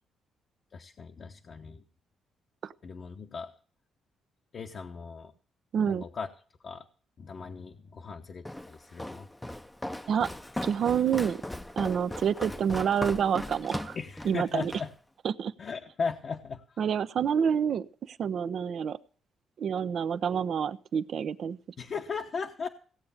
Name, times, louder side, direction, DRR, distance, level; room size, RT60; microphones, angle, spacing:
voice 1, 0.7-1.8 2.8-3.5 4.5-5.3 5.9-6.3 6.6-6.8 7.2-9.3 13.9-14.9 15.6-16.6 21.8-22.7, left 5 dB, 50° left, 2 dB, 1.0 m, -37 dB
voice 2, 5.7-6.0 10.1-10.3 10.6-11.4 11.8-14.0 14.2-14.7 15.2-15.5 16.8-19.0 19.6-21.6, right 8 dB, 60° right, 14 dB, 0.7 m, -28 dB
Walk footsteps, 8.4-14.9, left 1 dB, 10° left, 0.7 m, -38 dB
17.0 x 7.9 x 7.2 m, 0.43 s
cardioid pair, 90°, 0 cm